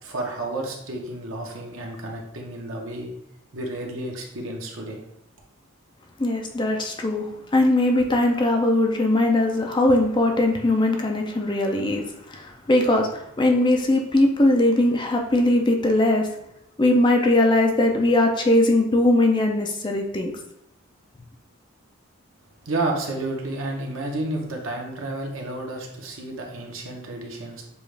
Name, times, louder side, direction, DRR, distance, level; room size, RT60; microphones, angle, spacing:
voice 1, 0.0-3.1 3.5-5.0 22.6-27.6, right 2 dB, 70° right, 0 dB, 1.0 m, -31 dB
voice 2, 6.2-12.0 12.3-16.3 16.8-20.3, left 1 dB, 20° left, 3 dB, 0.4 m, -20 dB
6.8 x 2.4 x 3.2 m, 0.79 s
head